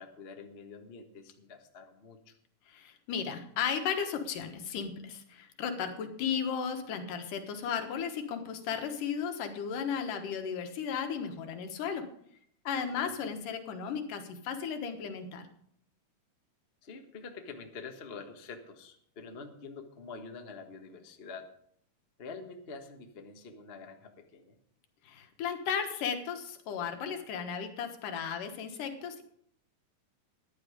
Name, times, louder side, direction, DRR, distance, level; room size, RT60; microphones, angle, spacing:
voice 1, 0.0-2.4 12.8-13.2 16.8-21.5 22.2-24.6, left 4 dB, 55° left, 4 dB, 0.6 m, -46 dB
voice 2, 2.7-12.1 12.6-15.5 25.0-29.2, left 7 dB, 90° left, 6 dB, 3.0 m, -35 dB
14.0 x 10.5 x 5.0 m, 0.67 s
omnidirectional pair, 3.7 m